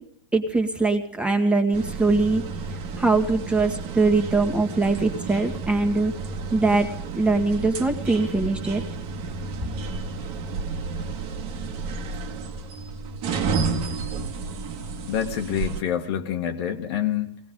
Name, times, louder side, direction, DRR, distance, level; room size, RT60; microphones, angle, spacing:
voice 1, 0.3-2.4 3.0-6.1 6.5-6.9 7.1-8.8, right 3 dB, 5° right, 4 dB, 1.9 m, -22 dB
sound 1, 1.7-15.8, right 4 dB, 40° right, 1.8 m, -31 dB
voice 2, 15.1-17.4, left 9 dB, 60° left, 3 dB, 1.6 m, -27 dB
21.0 x 18.0 x 3.8 m, 0.66 s
hypercardioid pair, 125°, 15 cm